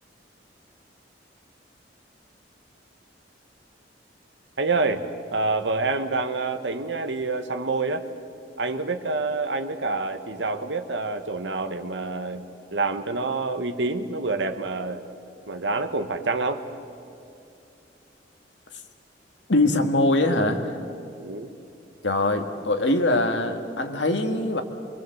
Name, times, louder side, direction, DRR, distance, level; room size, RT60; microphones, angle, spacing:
voice 1, 4.6-5.1 5.3-8.1 8.6-15.0 15.5-16.6 21.2-21.5, right 3 dB, 80° right, 7 dB, 1.3 m, -27 dB
voice 2, 19.5-20.7 22.0-24.6, left 2 dB, 90° left, 5 dB, 1.9 m, -22 dB
23.5 x 23.5 x 7.9 m, 2.6 s
head